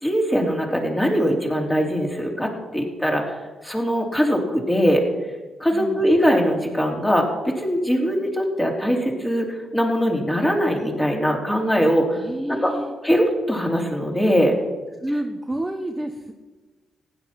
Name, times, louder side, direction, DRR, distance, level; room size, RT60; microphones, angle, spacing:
voice 1, 0.0-5.1 5.6-12.2 12.5-12.7 13.0-14.5, equal, 10° left, 0 dB, 3.4 m, -21 dB
voice 2, 5.7-6.1 12.2-12.9 15.0-16.3, right 1 dB, 15° right, 4 dB, 1.0 m, -29 dB
15.5 x 10.0 x 5.9 m, 1.2 s
cardioid pair, 75°, 0 cm